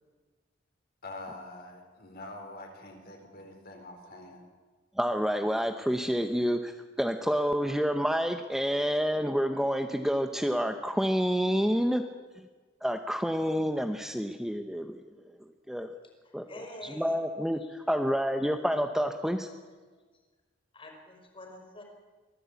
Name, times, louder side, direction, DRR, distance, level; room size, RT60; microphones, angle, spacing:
voice 1, 1.0-4.4, left 2 dB, 50° left, 2 dB, 4.5 m, -45 dB
voice 2, 5.0-6.7 7.0-12.0 12.8-15.0 15.7-15.9 16.3-19.5, equal, ahead, 6 dB, 0.8 m, -28 dB
voice 3, 16.2-17.1 17.6-17.7 20.7-21.8, left 1 dB, 30° left, 2 dB, 4.8 m, -46 dB
23.5 x 15.5 x 8.4 m, 1.4 s
head